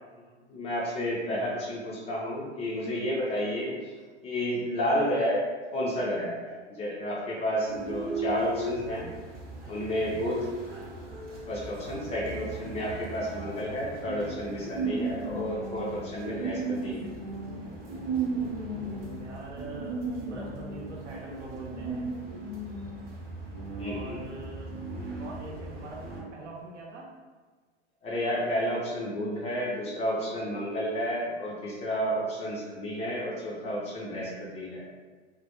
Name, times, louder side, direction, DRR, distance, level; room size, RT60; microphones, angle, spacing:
voice 1, 0.5-3.9 4.2-5.4 5.7-9.1 9.7-10.4 11.5-17.0 23.8-24.2 28.0-34.9, equal, 20° left, -4 dB, 0.3 m, -31 dB
sound 1, 7.7-26.2, right 3 dB, 25° right, 0.6 m, -36 dB
voice 2, 11.8-12.1 18.8-22.1 23.8-24.7 25.2-27.1, right 2 dB, 80° right, -2 dB, 0.7 m, -44 dB
2.2 x 2.1 x 2.8 m, 1.4 s
hypercardioid pair, 105°, 35 cm